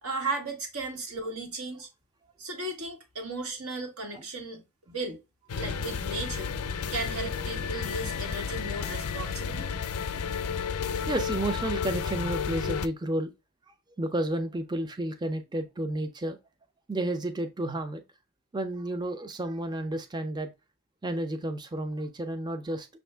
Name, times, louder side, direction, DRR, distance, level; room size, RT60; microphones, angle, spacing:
voice 1, 0.0-1.9 2.4-4.6 4.9-5.2 5.5-6.5 6.9-9.6, right 2 dB, 75° right, 1.5 m, -35 dB
sound 1, 5.5-12.9, left 6 dB, 80° left, 0.5 m, -32 dB
voice 2, 11.1-13.3 14.0-16.4 16.9-18.0 18.5-20.5 21.0-22.9, right 1 dB, 20° right, 0.5 m, -31 dB
6.2 x 2.6 x 3.3 m
head